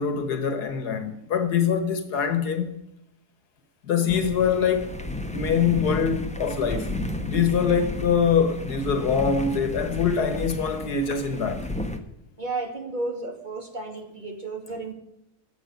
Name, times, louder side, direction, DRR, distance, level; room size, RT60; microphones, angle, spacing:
voice 1, 0.0-2.8 3.8-5.0 5.3-6.9 7.2-11.7, left 6 dB, 90° left, 2.0 m, -24 dB
sound 1, 4.1-12.0, left 1 dB, 5° left, 1.2 m, -33 dB
voice 2, 12.4-14.9, right 3 dB, 30° right, 2.5 m, -32 dB
13.0 x 8.0 x 9.3 m
omnidirectional pair, 1.6 m